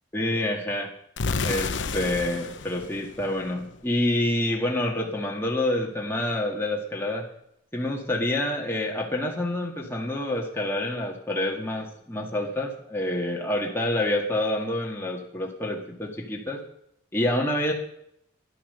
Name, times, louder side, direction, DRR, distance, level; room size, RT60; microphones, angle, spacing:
voice 1, 0.1-0.9 1.4-7.2 7.7-16.6 17.1-17.7, left 1 dB, 10° left, -1 dB, 1.9 m, -27 dB
sound 1, 1.2-4.0, left 4 dB, 75° left, 0.9 m, -31 dB
13.5 x 11.0 x 6.8 m, 0.72 s
head